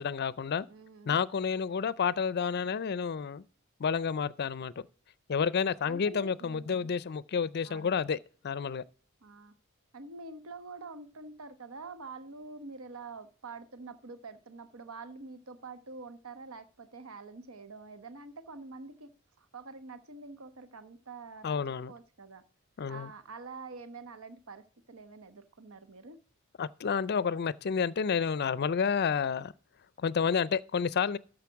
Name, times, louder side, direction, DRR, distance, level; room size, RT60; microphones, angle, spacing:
voice 1, 0.0-0.7 1.1-3.4 3.8-4.7 5.3-8.2 8.4-8.8 21.4-21.9 22.8-23.1 26.6-29.5 30.0-31.2, left 6 dB, 50° left, 0.4 m, -30 dB
voice 2, 0.7-1.2 5.8-6.9 7.6-7.9 9.2-9.5 9.9-19.1 19.4-21.6 21.9-22.4 22.9-26.2, right 3 dB, 85° right, 1.0 m, -46 dB
13.0 x 5.2 x 4.6 m
head